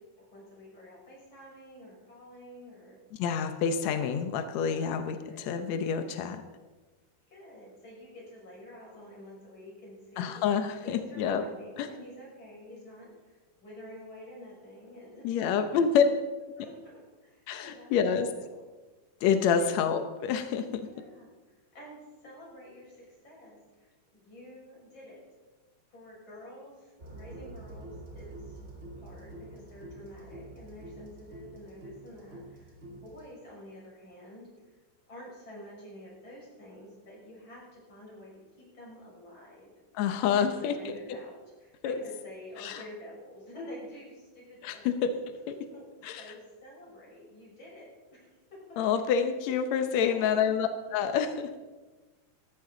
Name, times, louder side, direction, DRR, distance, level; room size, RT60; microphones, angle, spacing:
voice 1, 0.0-3.0 4.8-5.5 7.3-10.4 10.8-15.4 15.7-15.8 16.6-18.6 19.6-19.7 20.8-21.3 21.7-25.2 25.9-28.6 29.0-34.5 35.1-39.7 40.3-45.1 45.7-45.9 46.2-49.0 50.0-50.5, left 1 dB, 30° left, -4 dB, 6.6 m, -48 dB
voice 2, 3.2-6.4 10.2-11.4 11.8-11.9 15.2-16.0 17.5-18.3 19.2-20.9 39.9-40.9 41.8-41.9 42.6-42.8 44.6-45.1 45.5-45.6 46.0-46.2 48.8-51.6, left 7 dB, 85° left, 8 dB, 1.5 m, -28 dB
sound 1, 27.0-33.3, right 2 dB, 25° right, 1.7 m, -47 dB
18.5 x 14.0 x 3.9 m, 1.2 s
omnidirectional pair, 4.4 m